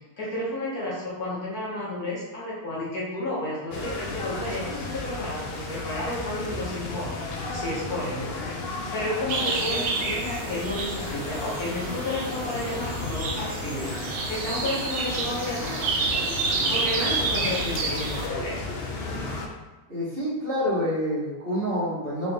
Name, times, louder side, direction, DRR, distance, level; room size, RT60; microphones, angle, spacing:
voice 1, 0.2-13.9 14.3-15.9 16.7-18.7, left 1 dB, 55° left, -7 dB, 1.7 m, -32 dB
sound 1, 3.7-19.5, left 3 dB, 85° left, 0.5 m, -34 dB
sound 2, 9.3-18.3, right 4 dB, 85° right, 1.5 m, -29 dB
voice 2, 19.9-22.3, equal, 35° right, -10 dB, 1.5 m, -27 dB
4.0 x 3.8 x 3.5 m, 1.2 s
omnidirectional pair, 1.9 m